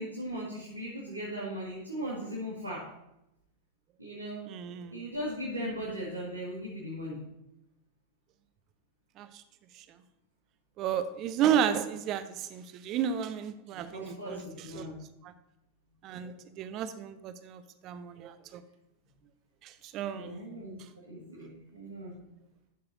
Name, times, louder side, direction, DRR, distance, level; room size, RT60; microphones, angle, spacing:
voice 1, 0.0-2.8 4.0-4.4 4.9-7.2 13.9-15.0 20.1-20.8 21.1-22.1, equal, 85° right, -8 dB, 2.1 m, -38 dB
voice 2, 4.5-5.0 9.2-9.3 10.8-14.9 15.2-15.3 16.0-18.6 19.6-20.4, right 9 dB, 35° right, 12 dB, 0.6 m, -32 dB
12.0 x 6.8 x 2.8 m, 0.87 s
figure-of-eight pair, 90°, 0 cm